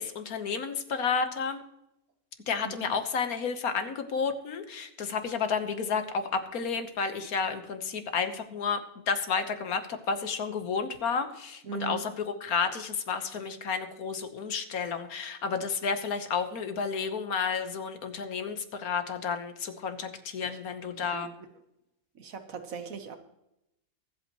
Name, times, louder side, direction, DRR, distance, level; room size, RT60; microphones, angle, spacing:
voice 1, 0.0-1.6 2.5-8.8 9.1-21.3, left 5 dB, 85° left, 8 dB, 1.6 m, -31 dB
voice 2, 11.7-12.0 21.0-21.3 22.1-23.1, right 6 dB, 70° right, 8 dB, 1.5 m, -39 dB
24.0 x 8.2 x 3.1 m, 0.85 s
omnidirectional pair, 1.5 m